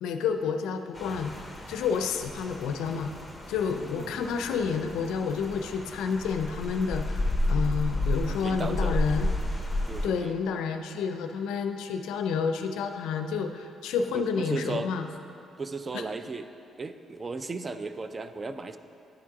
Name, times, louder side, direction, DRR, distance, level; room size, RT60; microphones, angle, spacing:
voice 1, 0.0-1.3 1.7-3.1 3.5-9.3 10.0-15.1 15.9-16.0, left 6 dB, 90° left, 7 dB, 0.4 m, -29 dB
Rain, 0.9-10.1, left 1 dB, 5° left, 0.8 m, -32 dB
voice 2, 3.8-4.2 8.3-9.0 9.9-10.3 14.1-14.9 15.6-16.5 16.8-18.8, right 3 dB, 30° right, 10 dB, 0.3 m, -36 dB
10.0 x 3.7 x 4.7 m, 2.6 s
cardioid pair, 90°, 0 cm